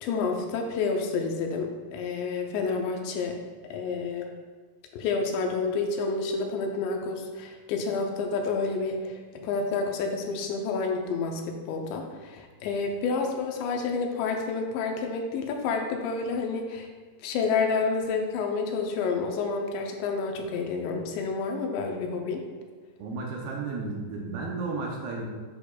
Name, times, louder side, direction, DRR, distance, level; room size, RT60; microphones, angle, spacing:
voice 1, 0.0-3.4 3.7-4.3 4.9-16.9 17.2-22.4, left 4 dB, 85° left, 2 dB, 3.0 m, -29 dB
voice 2, 23.0-25.3, right 3 dB, 75° right, -1 dB, 2.6 m, -33 dB
10.5 x 6.1 x 2.3 m, 1.5 s
omnidirectional pair, 5.0 m